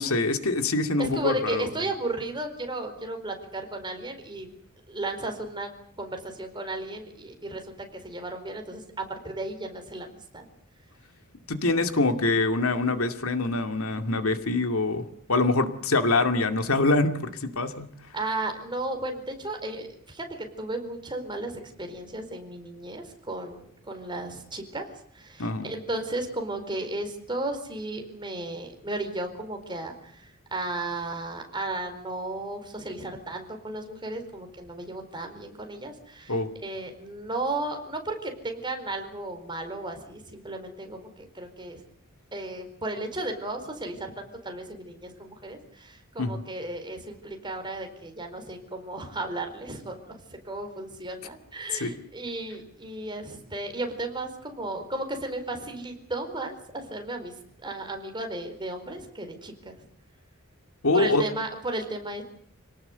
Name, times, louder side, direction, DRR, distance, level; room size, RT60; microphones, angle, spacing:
voice 1, 0.0-1.7 11.5-17.9 25.4-25.7 36.3-36.5 46.2-46.4 51.7-51.9 60.8-61.2, left 2 dB, 85° left, 7 dB, 2.4 m, -25 dB
voice 2, 1.0-4.5 4.9-5.7 6.0-10.5 18.1-24.9 25.1-36.4 36.6-41.8 42.3-50.2 50.4-59.7 60.9-62.2, right 2 dB, 20° right, 5 dB, 4.5 m, -34 dB
27.5 x 18.5 x 8.1 m, 0.62 s
head